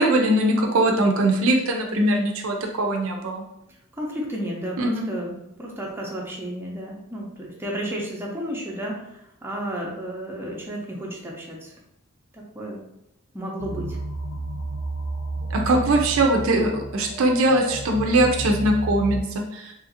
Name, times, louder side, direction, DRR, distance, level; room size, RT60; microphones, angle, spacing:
voice 1, 0.0-3.4 4.8-5.1 15.5-19.7, right 1 dB, 70° right, 2 dB, 0.5 m, -21 dB
voice 2, 3.9-11.7 12.3-12.9 13.3-14.0, equal, 10° right, -3 dB, 0.5 m, -32 dB
sound 1, 13.6-19.2, right 2 dB, 60° left, 0.4 m, -31 dB
2.8 x 2.5 x 2.7 m, 0.82 s
head